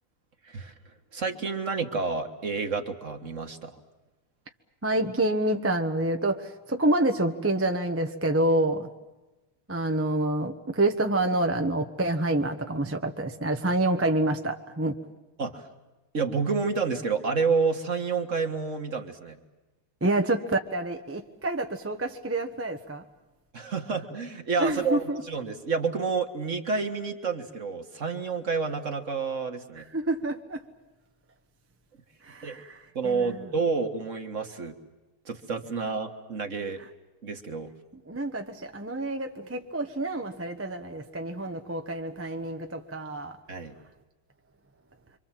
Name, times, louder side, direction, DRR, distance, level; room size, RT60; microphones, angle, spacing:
voice 1, 0.4-0.7 1.1-3.8 15.4-15.7 16.1-19.4 23.5-29.8 32.4-32.6 33.0-34.8 35.3-36.8 37.2-37.7 43.5-43.8, right 4 dB, 40° right, 1.7 m, -29 dB
voice 2, 4.8-8.9 9.7-15.0 20.0-23.1 24.6-25.2 29.7-30.7 32.2-33.5 36.8-36.9 37.9-43.4 43.7-43.8, right 1 dB, 10° right, 0.7 m, -28 dB
27.0 x 25.0 x 7.5 m
omnidirectional pair, 2.3 m